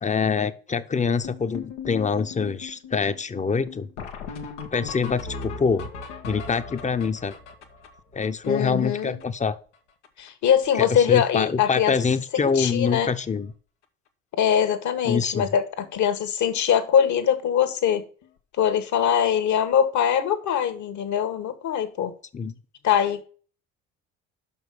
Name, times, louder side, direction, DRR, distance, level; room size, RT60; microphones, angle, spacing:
voice 1, 0.0-3.9 4.7-5.9 6.2-7.4 8.1-9.6 10.8-13.5 15.0-15.4 22.3-22.5, left 5 dB, 20° left, 0.8 m, -25 dB
sound 1, 1.2-9.5 9.7-9.8 10.0-10.3 10.6-11.1 11.4-11.7 12.5-12.6 13.0-13.1 13.4-13.5 15.8-15.9 18.2-18.3, left 5 dB, 90° left, 1.2 m, -39 dB
voice 2, 8.4-9.2 10.2-12.0 12.3-13.1 14.3-18.1 18.6-22.1 22.8-23.2, left 8 dB, 55° left, 1.4 m, -22 dB
5.9 x 5.5 x 6.7 m
hypercardioid pair, 65°, 35 cm